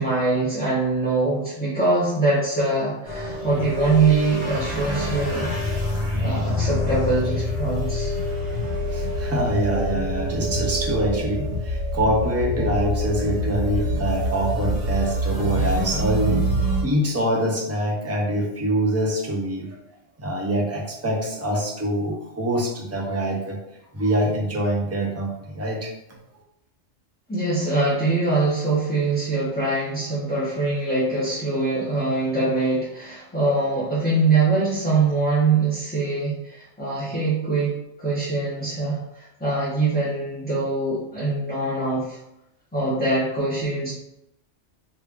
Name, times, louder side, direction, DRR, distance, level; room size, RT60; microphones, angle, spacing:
voice 1, 0.0-5.5 6.2-8.2 27.3-42.2 42.7-43.9, right 3 dB, 10° left, -11 dB, 0.9 m, -23 dB
sound 1, 3.0-16.8, equal, 55° right, 1.1 m, -26 dB
voice 2, 8.9-16.4 16.8-19.7 20.2-23.6 23.9-26.2, right 1 dB, 20° right, -1 dB, 0.4 m, -25 dB
3.1 x 2.5 x 3.5 m, 0.85 s
omnidirectional pair, 1.2 m